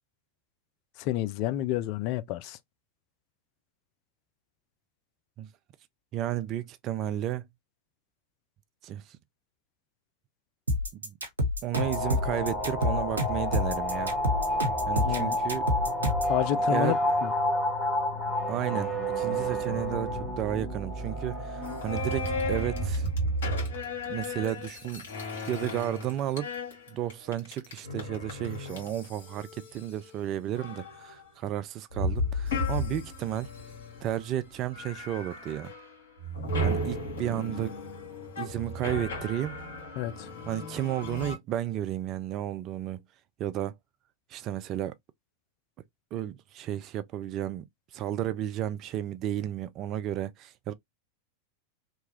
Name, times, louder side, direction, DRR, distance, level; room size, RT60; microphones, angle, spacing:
voice 1, 1.0-2.6 15.0-15.4 16.3-17.0 17.2-17.3 40.0-40.3, left 13 dB, 45° left, 0.3 m, -29 dB
voice 2, 6.1-7.5 8.8-9.2 11.0-11.2 11.6-14.1 14.9-15.6 16.7-17.0 18.5-23.1 24.1-25.1 25.4-26.5 26.9-33.5 34.0-35.7 36.6-37.7 38.4-39.5 40.5-43.0 43.4-43.8 44.3-44.9 46.1-47.7 47.9-50.7, right 12 dB, 35° right, 0.3 m, -33 dB
sound 1, 10.7-16.4, left 1 dB, 75° right, 0.8 m, -28 dB
sound 2, 11.7-22.9, equal, 10° right, 1.2 m, -30 dB
sound 3, 21.6-30.2 30.6-31.2 31.9-34.4 34.7-35.9 36.2-41.4, left 1 dB, 60° left, 1.4 m, -34 dB
2.8 x 2.2 x 2.8 m
figure-of-eight pair, 90°, 0 cm